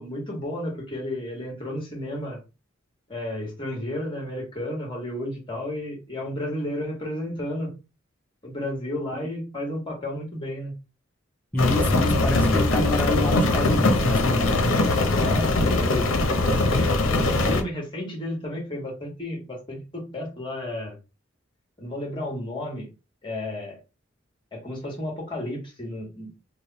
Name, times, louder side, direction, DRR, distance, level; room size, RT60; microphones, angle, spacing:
voice 1, 0.0-2.4 3.1-7.7 8.4-10.7 15.2-16.1 16.4-21.0 21.8-22.9 23.2-23.8 24.5-26.3, left 1 dB, 25° left, 1.6 m, -32 dB
voice 2, 11.5-14.8, left 1 dB, 10° left, 0.6 m, -27 dB
Rain, 11.6-17.6, left 2 dB, 80° left, 0.7 m, -21 dB
3.4 x 2.2 x 4.0 m
head